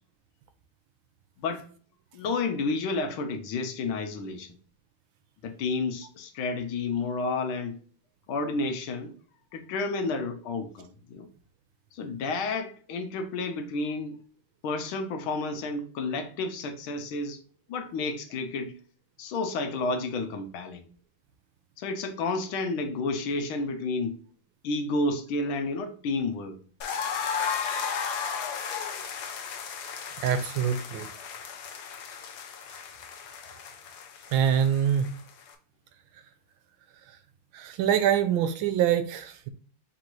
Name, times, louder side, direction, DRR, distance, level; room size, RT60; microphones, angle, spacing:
voice 1, 1.4-1.7 2.1-4.5 5.4-7.8 8.3-9.1 9.5-11.3 11.9-14.2 14.6-17.4 17.7-18.7 19.2-20.9 21.8-24.2 24.6-26.6, left 3 dB, 80° left, 1.6 m, -31 dB
sound 1, 26.8-35.5, left 6 dB, 65° left, 1.1 m, -35 dB
voice 2, 30.2-31.1 34.3-35.2 36.1-36.2 37.1-37.2 37.5-39.5, right 9 dB, 75° right, 1.4 m, -25 dB
4.5 x 4.0 x 2.6 m
omnidirectional pair, 2.2 m